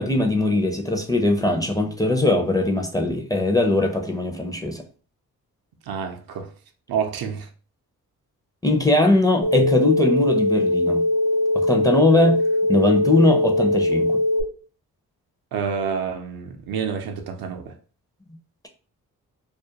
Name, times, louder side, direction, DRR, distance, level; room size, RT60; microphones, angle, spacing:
voice 1, 0.0-4.8 8.6-11.1 11.5-14.2, left 2 dB, 10° left, 0.5 m, -20 dB
voice 2, 5.9-6.5 6.9-7.5 15.5-17.7, right 6 dB, 65° right, 0.6 m, -28 dB
sound 1, 9.4-14.4, left 1 dB, 75° left, 0.8 m, -21 dB
2.4 x 2.1 x 2.8 m
supercardioid pair, 45°, 38 cm